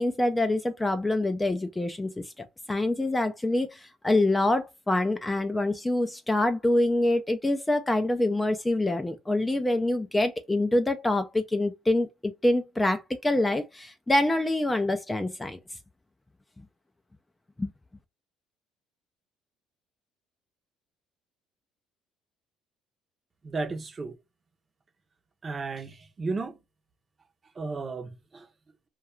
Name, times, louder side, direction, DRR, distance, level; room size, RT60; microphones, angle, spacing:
voice 1, 0.0-15.6 17.6-17.7, left 1 dB, 10° left, 0.3 m, -26 dB
voice 2, 23.4-24.1 25.4-26.5 27.6-28.4, right 3 dB, 25° right, 0.6 m, -34 dB
2.3 x 2.2 x 3.0 m
cardioid pair, 120°, 0 cm